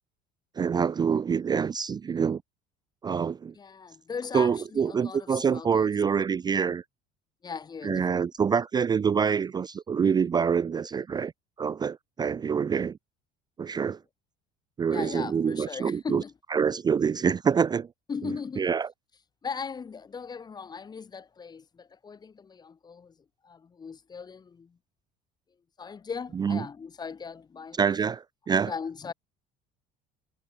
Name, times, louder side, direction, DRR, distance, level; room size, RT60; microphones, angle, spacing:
voice 1, 0.6-2.4 3.0-3.5 4.3-6.8 7.8-11.3 11.6-13.0 13.6-14.0 14.8-16.2 16.5-17.9 18.6-18.9 26.4-26.6 27.8-28.7, right 6 dB, 20° right, 0.5 m, -26 dB
voice 2, 3.5-6.0 7.4-8.3 14.9-16.3 18.1-18.7 19.4-23.2 23.4-24.8 25.8-27.8 28.7-29.1, left 5 dB, 20° left, 1.0 m, -38 dB
cardioid pair, 135°, 18 cm